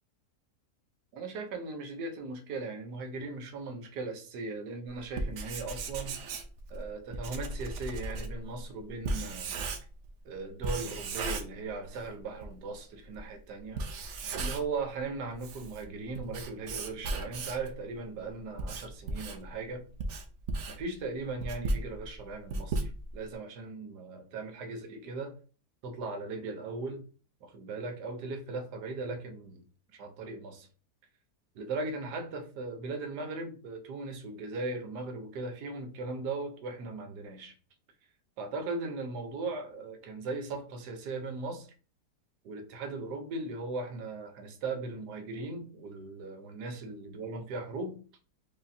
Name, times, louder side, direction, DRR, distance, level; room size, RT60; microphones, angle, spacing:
voice 1, 1.1-6.2 6.7-9.5 10.2-13.8 14.3-19.8 20.7-25.3 25.8-27.0 27.4-29.6 29.9-30.7 31.5-37.5 38.4-41.7 42.4-48.0, right 3 dB, 80° right, 1.4 m, -38 dB
Writing, 5.0-10.1 10.6-12.1 12.4-12.5 13.1-13.2 13.7-14.8 15.2-17.7 18.3-23.3, right 2 dB, 65° right, 0.7 m, -36 dB
4.9 x 2.9 x 2.6 m
omnidirectional pair, 1.8 m